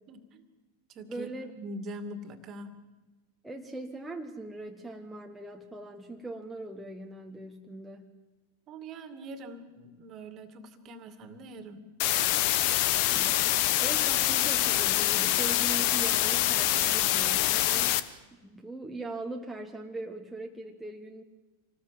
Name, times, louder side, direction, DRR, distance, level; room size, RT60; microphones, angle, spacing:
voice 1, 0.1-0.4 0.9-1.3 1.5-2.7 8.7-11.8, right 1 dB, 35° right, 10 dB, 2.4 m, -43 dB
voice 2, 1.1-1.5 3.4-8.1 13.1-13.4 13.8-17.9 18.3-21.2, right 2 dB, 5° right, 1 dB, 1.6 m, -40 dB
sound 1, 12.0-18.0, left 14 dB, 45° left, 1.1 m, -25 dB
27.0 x 19.5 x 7.6 m, 1.2 s
figure-of-eight pair, 90°, 0 cm